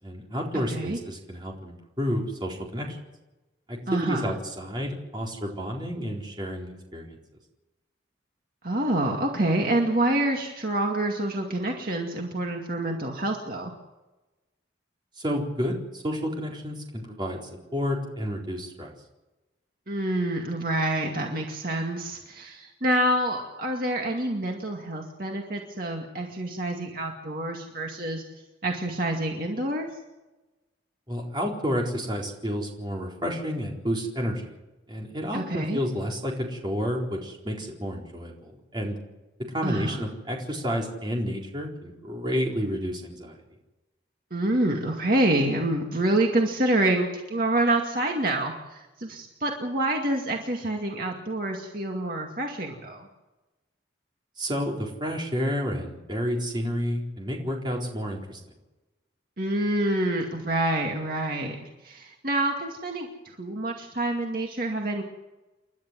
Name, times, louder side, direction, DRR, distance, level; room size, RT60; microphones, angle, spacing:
voice 1, 0.0-3.0 3.7-7.2 15.2-17.4 17.7-18.9 31.1-34.6 34.9-39.0 39.5-43.4 54.4-58.4, equal, 25° right, -1 dB, 4.2 m, -30 dB
voice 2, 3.9-4.3 8.6-13.7 19.9-28.2 28.6-29.9 35.3-35.8 39.6-40.0 44.3-53.1 59.4-65.0, right 1 dB, 50° right, 1 dB, 2.3 m, -27 dB
29.5 x 12.0 x 7.6 m, 1.1 s
head